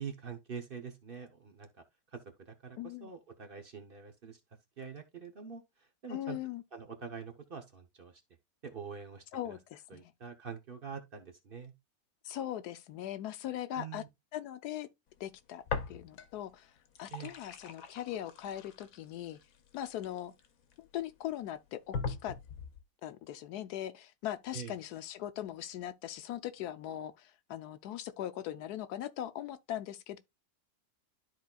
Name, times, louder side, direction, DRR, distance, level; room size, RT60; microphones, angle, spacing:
voice 1, 0.0-1.8 2.1-4.4 4.8-6.4 6.7-8.2 8.6-9.6 9.9-11.7 13.8-14.1 17.1-17.3 24.5-24.8, right 6 dB, 45° right, 0.9 m, -45 dB
voice 2, 2.8-3.1 6.1-6.6 9.3-10.1 12.2-14.0 14.3-14.9 15.2-16.7 17.0-19.4 19.7-20.3 20.8-22.4 23.0-30.2, left 12 dB, 85° left, 1.2 m, -40 dB
sound 1, 15.7-16.5 16.8-20.7 21.3-21.4 21.9-22.8, left 5 dB, 65° left, 1.2 m, -40 dB
12.5 x 4.2 x 2.3 m
omnidirectional pair, 1.6 m